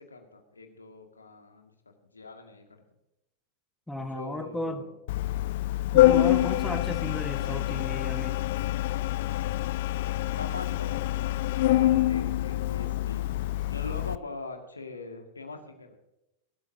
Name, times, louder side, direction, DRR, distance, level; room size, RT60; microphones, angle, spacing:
voice 1, 0.0-1.7 2.1-2.6 3.9-5.0 7.3-7.6 10.4-13.3 13.7-16.0, left 3 dB, 75° left, 4 dB, 2.1 m, -42 dB
voice 2, 3.9-4.8 5.9-8.4, left 1 dB, 5° left, 6 dB, 1.5 m, -34 dB
Organ, 5.1-14.1, left 15 dB, 50° left, 0.4 m, -26 dB
20.5 x 13.0 x 2.8 m, 0.89 s
figure-of-eight pair, 90°, 0 cm